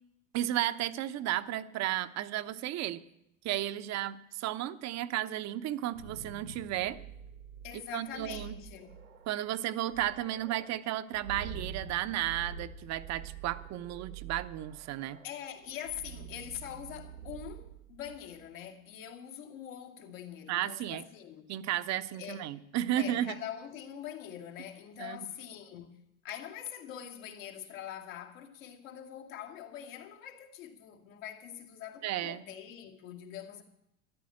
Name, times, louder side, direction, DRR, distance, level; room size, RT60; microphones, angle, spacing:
voice 1, 0.3-3.0 3.4-7.0 7.9-8.5 9.3-15.2 20.5-21.0 21.5-23.4 25.0-25.2 32.0-32.4, right 13 dB, 40° right, 0.9 m, -33 dB
sound 1, 5.7-18.5, right 7 dB, 85° right, 2.0 m, -47 dB
voice 2, 7.6-8.9 15.2-21.5 22.1-22.5 23.0-25.9 26.2-33.6, left 10 dB, 70° left, 2.5 m, -44 dB
13.5 x 11.5 x 7.6 m
hypercardioid pair, 85°, 42 cm